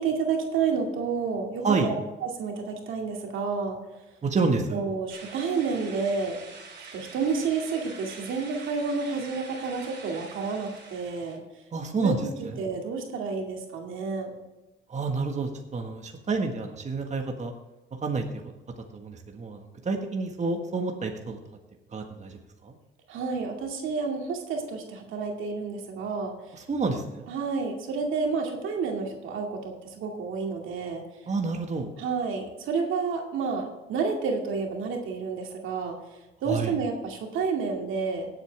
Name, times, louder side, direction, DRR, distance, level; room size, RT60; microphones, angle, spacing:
voice 1, 0.0-1.9 2.2-3.8 4.7-6.4 6.9-11.4 12.0-12.1 12.6-14.3 23.1-26.6 27.3-31.0 32.0-35.9 36.4-38.3, right 5 dB, 80° right, 1 dB, 2.3 m, -30 dB
voice 2, 1.6-1.9 4.2-4.8 11.7-12.6 14.9-17.5 18.0-18.4 18.8-21.4 21.9-22.7 26.5-27.3 31.3-31.9 36.5-36.7, right 4 dB, 35° right, 3 dB, 1.7 m, -29 dB
sound 1, 5.1-11.4, right 4 dB, 60° right, 3.5 m, -45 dB
18.0 x 8.2 x 3.5 m, 1.1 s
cardioid pair, 90°, 20 cm